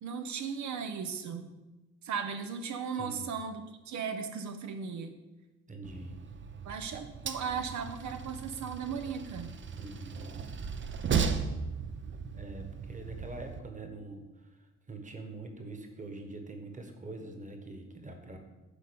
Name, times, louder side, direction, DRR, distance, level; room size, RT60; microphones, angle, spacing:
voice 1, 0.0-1.5 2.0-5.1 6.7-9.5, right 6 dB, 70° right, 7 dB, 0.8 m, -37 dB
voice 2, 2.9-3.3 5.7-6.2 9.7-10.5 11.7-11.8 12.3-18.4, right 2 dB, 25° right, 5 dB, 1.4 m, -44 dB
Train, 5.8-13.6, right 6 dB, 40° right, 0.7 m, -36 dB
9.9 x 3.8 x 6.9 m, 1.1 s
cardioid pair, 90°, 30 cm